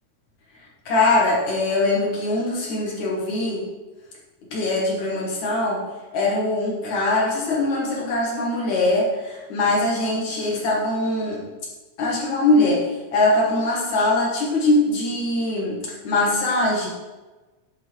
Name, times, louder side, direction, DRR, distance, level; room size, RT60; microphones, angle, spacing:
voice 1, 0.9-3.6 4.5-5.8 6.1-11.4 12.0-12.8 13.1-15.8 16.0-16.9, left 2 dB, 60° left, -5 dB, 3.1 m, -22 dB
10.0 x 4.3 x 4.8 m, 1.2 s
omnidirectional pair, 3.8 m